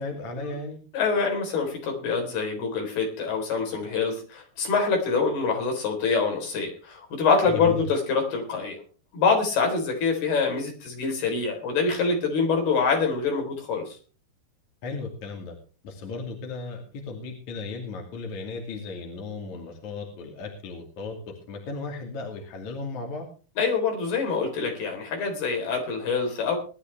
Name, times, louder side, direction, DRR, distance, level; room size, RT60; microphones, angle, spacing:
voice 1, 0.0-0.8 7.5-7.8 14.8-15.6 15.8-23.3, left 3 dB, 50° left, 2 dB, 3.6 m, -35 dB
voice 2, 0.9-8.8 9.1-13.8 23.6-26.6, left 5 dB, 70° left, 2 dB, 5.9 m, -25 dB
20.5 x 12.0 x 3.4 m, 0.38 s
omnidirectional pair, 4.6 m